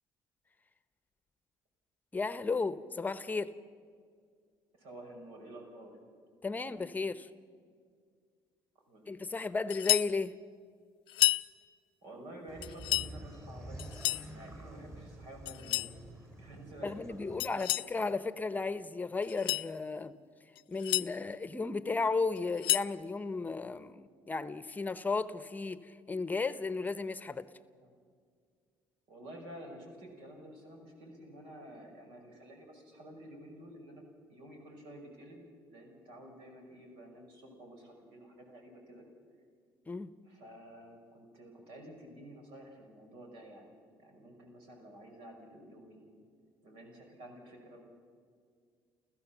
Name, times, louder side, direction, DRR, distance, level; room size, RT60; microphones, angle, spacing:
voice 1, 2.1-3.5 6.4-7.3 9.1-10.3 16.8-20.2 20.7-27.5 39.9-40.1, left 4 dB, 20° left, 14 dB, 0.8 m, -34 dB
voice 2, 4.8-6.0 8.9-9.4 12.0-14.0 14.3-15.9 16.4-17.7 27.8-27.9 29.1-34.0 34.3-39.0 40.3-46.1 46.6-47.8, right 1 dB, 90° right, 2 dB, 5.6 m, -51 dB
sound 1, 9.7-10.1 11.1-11.5 12.6-13.1 13.8-14.3 15.5-15.9 17.4-17.9 19.2-19.7 20.6-21.1 22.4-22.9, left 17 dB, 75° left, 0.5 m, -30 dB
sound 2, 12.5-17.5, right 1 dB, 30° right, 5.6 m, -48 dB
29.5 x 14.5 x 7.2 m, 2.1 s
cardioid pair, 105°, 9 cm